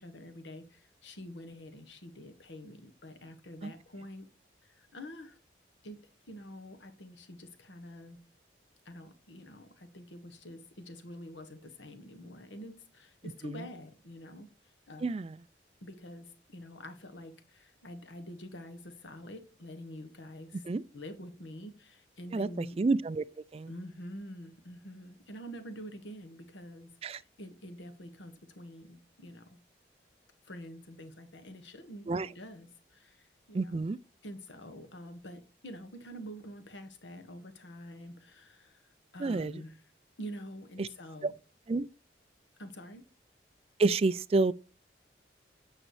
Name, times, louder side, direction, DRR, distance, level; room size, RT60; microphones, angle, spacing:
voice 1, 0.0-4.3 4.6-5.4 5.8-6.0 6.3-8.2 8.8-15.1 15.8-20.6 20.9-22.8 23.7-29.6 30.4-33.8 34.2-39.8 40.2-41.3 42.6-43.0, equal, 80° left, 1.5 m, -47 dB
voice 2, 15.0-15.4 20.7-20.8 22.3-23.7 27.0-27.2 32.1-32.3 33.5-34.0 39.2-39.6 40.8-40.9 41.7-41.9 43.8-44.5, right 3 dB, 30° right, 0.3 m, -29 dB
8.9 x 6.4 x 3.2 m
head